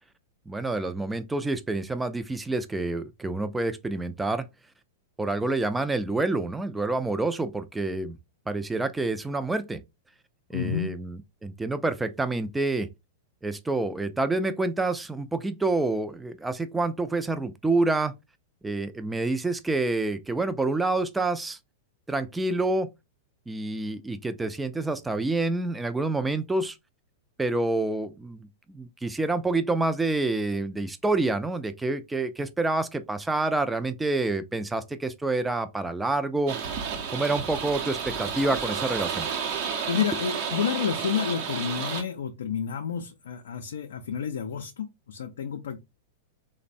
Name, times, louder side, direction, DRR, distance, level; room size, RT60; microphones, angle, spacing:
voice 1, 0.5-4.5 5.2-8.2 8.5-9.8 10.5-12.9 13.4-18.1 18.6-21.6 22.1-22.9 23.5-26.8 27.4-36.6 37.1-39.3, right 2 dB, 10° right, 0.3 m, -28 dB
voice 2, 10.5-10.9 39.9-45.8, left 8 dB, 80° left, 0.3 m, -30 dB
sound 1, 36.5-42.0, right 6 dB, 55° right, 0.7 m, -31 dB
3.1 x 2.0 x 2.5 m
hypercardioid pair, 120°, 0 cm